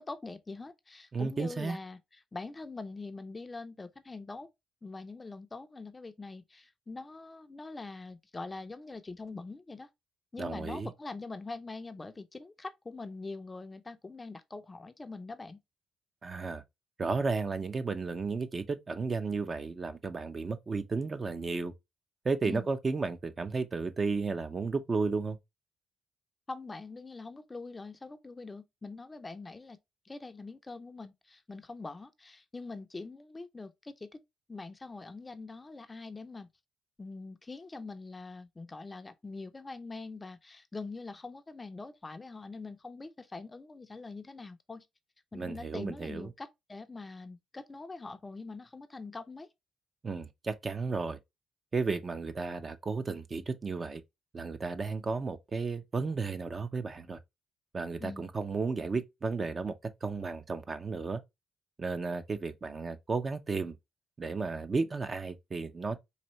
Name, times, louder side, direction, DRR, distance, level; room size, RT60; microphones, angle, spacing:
voice 1, 0.0-2.0 2.3-4.5 4.8-9.9 10.3-15.6 22.4-22.7 26.5-29.8 30.0-34.1 34.5-36.5 37.0-44.9 45.3-49.5 58.0-58.3, left 3 dB, 25° left, 0.5 m, -43 dB
voice 2, 1.1-1.8 10.4-10.9 16.2-16.6 17.0-21.7 22.2-25.4 45.3-46.3 50.0-51.2 51.7-54.0 54.3-57.2 57.7-59.7 60.0-61.2 61.8-63.8 64.2-66.0, right 4 dB, 35° right, 0.6 m, -33 dB
4.1 x 2.6 x 3.0 m
cardioid pair, 75°, 0 cm